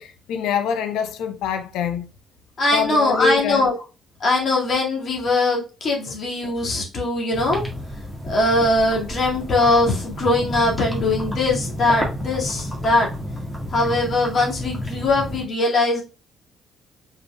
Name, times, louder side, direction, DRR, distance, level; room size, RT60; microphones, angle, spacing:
voice 1, 0.0-2.1 2.7-3.7, left 7 dB, 65° left, 0.6 m, -24 dB
voice 2, 2.6-3.8 4.2-7.6 8.2-13.1 13.7-16.0, left 2 dB, 50° left, 2.0 m, -21 dB
sound 1, 7.3-15.4, equal, 5° left, 1.8 m, -31 dB
5.1 x 4.4 x 2.3 m
figure-of-eight pair, 40°, 0 cm